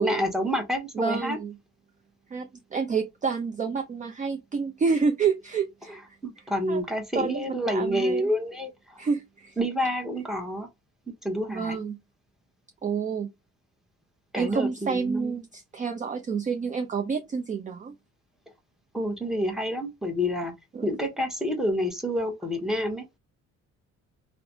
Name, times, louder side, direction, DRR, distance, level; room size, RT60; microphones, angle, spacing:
voice 1, 0.0-1.4 5.9-9.0 9.6-10.7 11.2-11.8 14.3-15.4 18.9-20.5 20.8-23.0, equal, ahead, 0.8 m, -28 dB
voice 2, 1.0-1.5 2.3-6.2 6.7-6.8 7.2-8.2 9.0-9.6 11.5-12.0 12.8-13.3 14.3-17.9 20.7-20.9, right 5 dB, 25° right, 0.4 m, -29 dB
3.1 x 2.0 x 2.7 m
cardioid pair, 90°, 30 cm